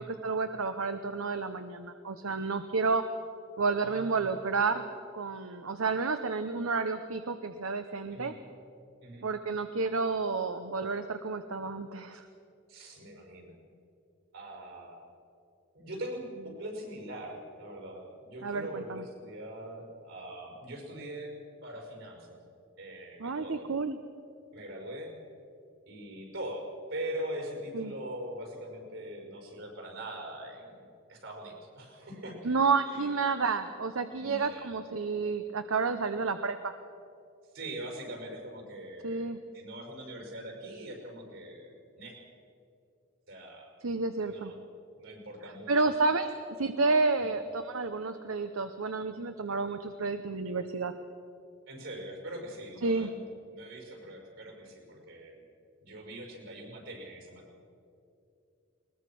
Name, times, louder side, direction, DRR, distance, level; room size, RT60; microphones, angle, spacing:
voice 1, 0.0-3.0 3.6-4.9 5.1-8.3 9.2-12.3 18.4-19.0 23.2-24.0 27.7-27.9 32.4-36.7 39.0-39.4 43.8-44.5 45.7-46.3 46.6-50.9 52.8-53.1, right 4 dB, 85° right, 9 dB, 0.8 m, -30 dB
voice 2, 3.7-4.3 8.1-8.3 9.0-9.3 12.7-13.6 14.3-15.0 15.7-21.3 21.6-22.4 22.8-23.7 24.5-25.1 25.9-30.8 31.1-32.6 32.9-33.1 34.1-34.7 37.5-39.3 39.5-42.2 43.3-43.7 44.2-44.6 45.0-45.7 47.2-47.3 51.7-55.4 55.8-57.6, right 1 dB, 70° right, 2 dB, 5.8 m, -42 dB
20.5 x 20.5 x 6.1 m, 2.6 s
head